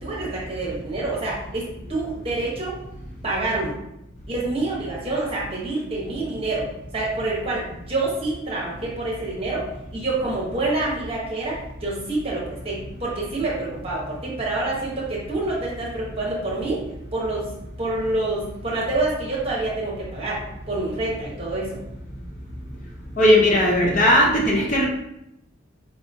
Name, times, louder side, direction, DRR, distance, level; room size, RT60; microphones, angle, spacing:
voice 1, 0.0-2.8 3.2-3.7 4.3-6.7 6.9-9.6 9.9-16.8 17.1-17.5 17.8-20.4 20.7-21.8, right 2 dB, 30° right, -4 dB, 1.1 m, -27 dB
voice 2, 23.2-24.9, left 1 dB, 40° left, -2 dB, 0.7 m, -17 dB
4.5 x 2.9 x 2.7 m, 0.83 s
head